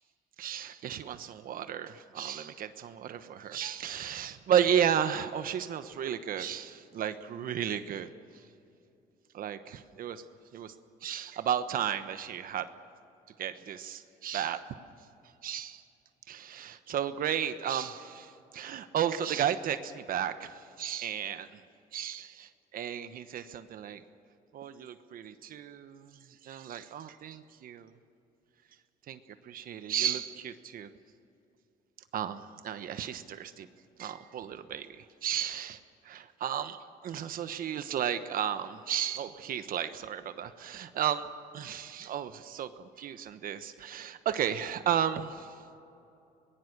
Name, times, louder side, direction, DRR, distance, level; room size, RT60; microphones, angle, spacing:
voice 1, 0.4-8.5 9.3-10.2 10.5-10.7 11.0-12.7 13.4-14.6 15.2-15.8 16.3-21.6 21.9-24.0 24.5-27.9 29.1-30.9 32.1-33.7 34.0-41.3 41.5-45.6, right 9 dB, 60° right, 10 dB, 1.1 m, -33 dB
24.0 x 20.5 x 6.7 m, 2.7 s
cardioid pair, 110°, 17 cm